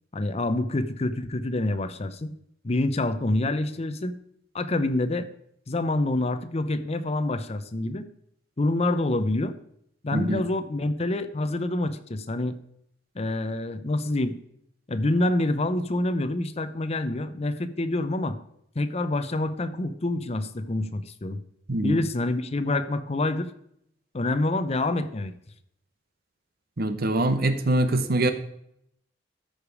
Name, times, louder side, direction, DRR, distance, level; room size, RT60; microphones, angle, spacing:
voice 1, 0.1-2.3 2.6-4.1 4.5-5.3 5.7-8.1 8.6-9.6 10.0-12.6 13.1-14.4 14.9-18.4 18.8-21.4 21.8-23.5 24.1-25.3, left 2 dB, 35° left, 11 dB, 0.7 m, -27 dB
voice 2, 10.1-10.4 21.7-22.0 26.8-28.3, right 1 dB, 55° right, 11 dB, 0.9 m, -24 dB
13.5 x 5.0 x 4.8 m, 0.73 s
head